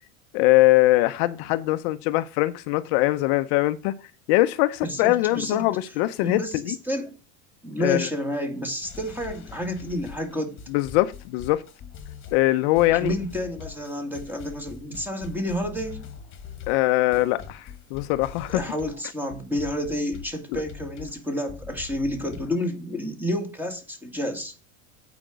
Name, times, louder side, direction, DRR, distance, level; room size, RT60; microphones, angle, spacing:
voice 1, 0.3-3.9 4.3-6.7 7.8-8.1 10.7-11.6 12.3-13.1 16.7-18.6 20.5-20.6, left 18 dB, 55° left, 0.7 m, -22 dB
voice 2, 4.8-5.7 6.2-7.1 7.6-10.6 12.9-16.0 18.5-24.5, equal, 5° right, 1.9 m, -30 dB
sound 1, 8.8-19.0 19.3-22.6, left 7 dB, 30° left, 1.5 m, -43 dB
8.9 x 5.1 x 6.1 m
supercardioid pair, 145°, 38 cm